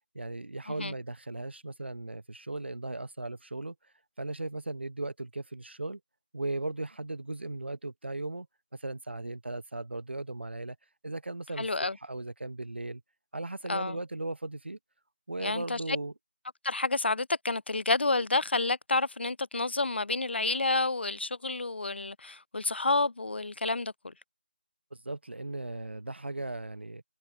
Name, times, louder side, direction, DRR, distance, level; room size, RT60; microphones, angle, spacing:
voice 1, 0.1-3.7 4.2-6.0 6.3-8.5 8.8-10.8 11.0-11.7 12.0-13.0 13.3-14.8 15.3-16.1 24.9-27.0, right 2 dB, 75° right, 1.1 m, -37 dB
voice 2, 11.6-12.0 13.7-14.0 15.4-16.0 16.6-24.1, left 3 dB, 75° left, 0.4 m, -29 dB
figure-of-eight pair, 170°, 6 cm